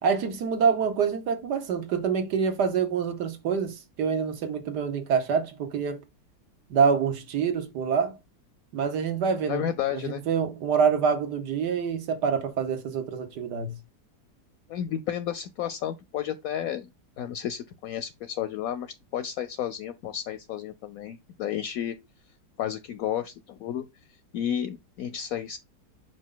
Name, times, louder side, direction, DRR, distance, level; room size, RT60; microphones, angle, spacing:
voice 1, 0.0-6.0 6.7-8.2 8.7-9.6 9.9-13.8, right 6 dB, 75° right, 1.7 m, -26 dB
voice 2, 9.5-10.2 14.7-16.9 17.2-22.0 22.6-23.9 24.3-25.6, left 10 dB, 70° left, 0.9 m, -32 dB
5.2 x 5.1 x 3.8 m
omnidirectional pair, 1.8 m